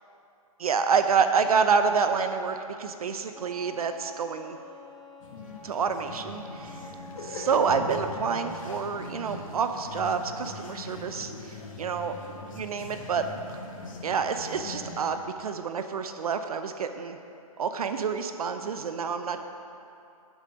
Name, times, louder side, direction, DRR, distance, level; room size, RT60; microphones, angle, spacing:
voice 1, 0.6-4.6 5.6-7.0 7.3-12.2 12.5-13.2 14.0-17.2 17.6-19.4, right 6 dB, 75° right, 8 dB, 0.7 m, -28 dB
Wind instrument woodwind instrument, 3.3-7.9, left 1 dB, ahead, 1.3 m, -47 dB
sound 1, 5.2-15.0, left 3 dB, 60° left, 1.9 m, -41 dB
9.8 x 8.3 x 5.2 m, 2.7 s
hypercardioid pair, 140°, 19 cm